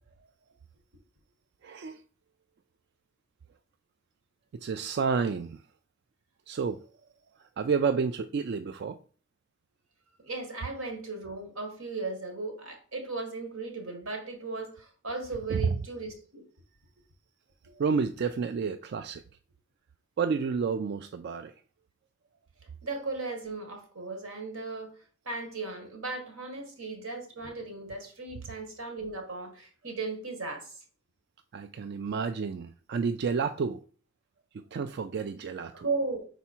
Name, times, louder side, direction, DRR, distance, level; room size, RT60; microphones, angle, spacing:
voice 1, 1.6-2.0 4.5-5.6 6.5-6.8 7.6-9.0 15.5-15.8 17.8-19.2 20.2-21.5 31.5-33.8 34.5-35.9, right 5 dB, 50° right, 0.3 m, -30 dB
voice 2, 10.2-16.4 22.8-25.0 25.2-30.8 35.7-36.3, right 3 dB, 80° right, 1.6 m, -36 dB
5.7 x 4.1 x 4.4 m
head